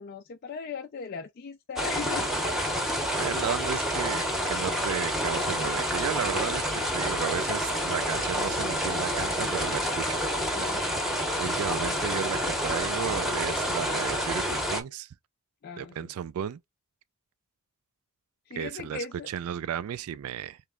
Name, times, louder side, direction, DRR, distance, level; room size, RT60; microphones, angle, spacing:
voice 1, 0.0-2.3 7.1-7.2 10.5-11.0 15.6-16.1 18.5-19.3, left 5 dB, 45° left, 0.4 m, -38 dB
sound 1, 1.8-14.8, equal, ahead, 0.8 m, -28 dB
voice 2, 3.2-6.7 6.9-10.2 11.4-15.1 15.8-16.6 18.5-20.6, right 8 dB, 80° right, 0.3 m, -34 dB
3.1 x 3.0 x 3.6 m
head